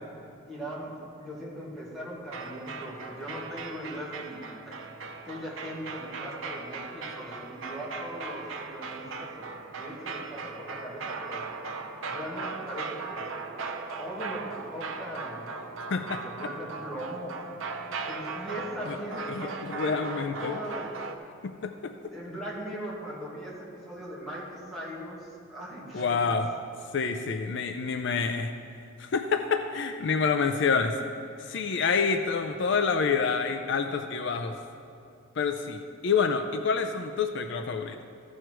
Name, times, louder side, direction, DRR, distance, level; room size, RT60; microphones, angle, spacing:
voice 1, 0.5-4.5 5.3-9.5 9.8-11.4 12.1-13.3 14.0-15.5 16.2-17.4 18.0-20.9 22.1-26.2, equal, ahead, -7 dB, 2.1 m, -39 dB
sound 1, 2.3-21.2, right 4 dB, 70° right, 0.7 m, -38 dB
voice 2, 15.9-16.2 18.9-19.0 19.3-20.6 21.4-21.9 25.9-26.5 26.9-28.5 29.0-31.0 31.5-34.6 35.4-38.0, left 5 dB, 60° left, 7 dB, 0.4 m, -27 dB
14.5 x 6.4 x 4.5 m, 2.7 s
head